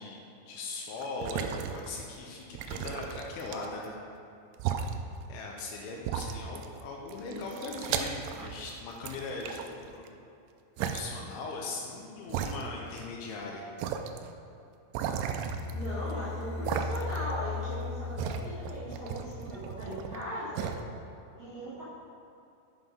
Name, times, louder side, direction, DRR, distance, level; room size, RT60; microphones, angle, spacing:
voice 1, 0.0-4.0 5.3-10.0 10.8-13.7, left 3 dB, 80° left, -1 dB, 3.0 m, -40 dB
sound 1, 1.0-2.1 2.6-3.9 4.5-4.9 5.6-5.7 6.0-6.8 7.1-8.7 9.1-10.1 10.8-11.0 11.7-11.8 12.3-13.1 13.3-13.4 13.8-14.2 14.9-16.1 16.7-17.3 17.6-20.2 20.6-20.8, right 8 dB, 85° right, 2.7 m, -35 dB
sound 2, 15.4-19.5, left 4 dB, 65° left, 2.9 m, -37 dB
voice 2, 15.7-20.7 21.4-21.8, equal, 60° right, -11 dB, 1.3 m, -38 dB
8.0 x 5.8 x 5.2 m, 2.8 s
omnidirectional pair, 5.9 m